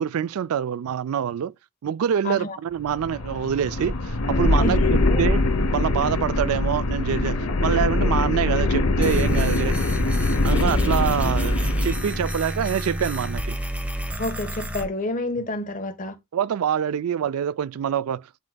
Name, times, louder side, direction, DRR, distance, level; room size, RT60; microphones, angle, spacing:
voice 1, 0.0-1.5 1.8-4.8 5.2-5.4 5.7-9.8 10.4-13.6 16.3-18.4, right 8 dB, 80° right, 0.3 m, -25 dB
voice 2, 2.2-2.6 4.6-5.3 14.2-16.2, left 2 dB, 40° left, 1.2 m, -29 dB
sound 1, 2.8-12.4, left 2 dB, 80° left, 0.8 m, -23 dB
sound 2, 9.0-14.8, right 1 dB, 5° right, 1.0 m, -29 dB
11.0 x 3.9 x 2.2 m
head